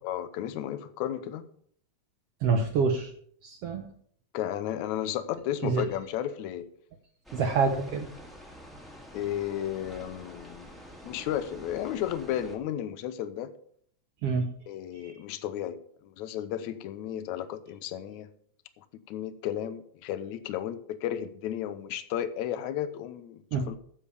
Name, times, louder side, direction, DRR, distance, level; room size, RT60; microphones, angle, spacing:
voice 1, 0.0-1.4 4.3-6.7 9.1-10.7 11.0-13.5 14.7-18.3 18.8-23.8, left 11 dB, 75° left, 12 dB, 2.1 m, -33 dB
voice 2, 2.4-3.1 3.4-3.9 5.6-5.8 7.3-8.1 14.2-14.5 15.0-15.1 23.5-23.7, right 4 dB, 65° right, 5 dB, 1.5 m, -26 dB
sound 1, 7.2-12.6, equal, ahead, 1.4 m, -47 dB
10.0 x 7.2 x 6.9 m, 0.62 s
omnidirectional pair, 3.5 m